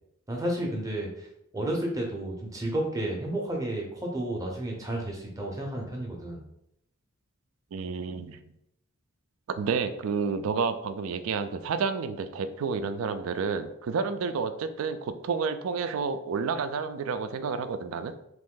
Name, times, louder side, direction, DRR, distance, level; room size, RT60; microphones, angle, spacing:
voice 1, 0.3-1.3 1.5-6.4, right 1 dB, 15° right, 0 dB, 0.6 m, -31 dB
voice 2, 7.7-8.4 9.5-18.1, right 5 dB, 70° right, 10 dB, 0.3 m, -30 dB
3.0 x 2.6 x 3.7 m, 0.80 s
head